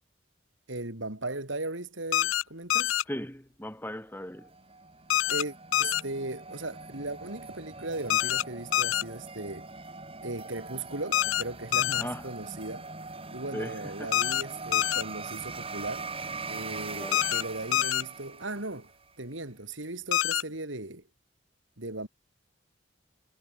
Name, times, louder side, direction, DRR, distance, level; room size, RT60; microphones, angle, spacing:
voice 1, 0.7-3.0 5.3-9.7 10.2-12.9 13.3-16.1 16.5-18.9 19.2-21.0 21.8-22.1, right 2 dB, 75° right, 4.1 m, -37 dB
sound 1, 2.1-2.4 2.7-3.0 5.1-5.4 5.7-6.0 8.1-8.4 8.7-9.0 11.1-11.4 11.7-12.0 14.1-14.4 14.7-15.0 17.1-17.4 17.7-18.0 20.1-20.4, left 12 dB, 80° left, 0.4 m, -25 dB
voice 2, 3.1-4.5 12.0-12.2 13.5-14.1 17.0-17.2, equal, 10° left, 6.7 m, -38 dB
sound 2, 4.4-19.0, right 3 dB, 30° right, 6.9 m, -42 dB
head